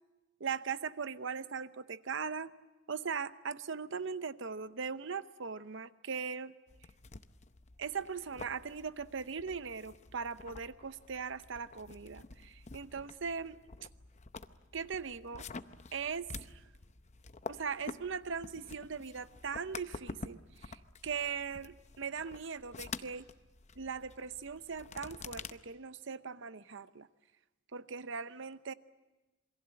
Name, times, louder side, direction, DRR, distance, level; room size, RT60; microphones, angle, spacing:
voice 1, 0.4-2.5 2.9-6.5 7.8-13.6 14.7-15.5 15.9-16.6 17.5-23.3 23.8-27.1 27.7-28.7, right 6 dB, 70° right, 14 dB, 0.8 m, -39 dB
sound 1, 6.7-25.5, left 4 dB, 35° left, 0.7 m, -49 dB
27.5 x 22.0 x 7.7 m, 1.1 s
head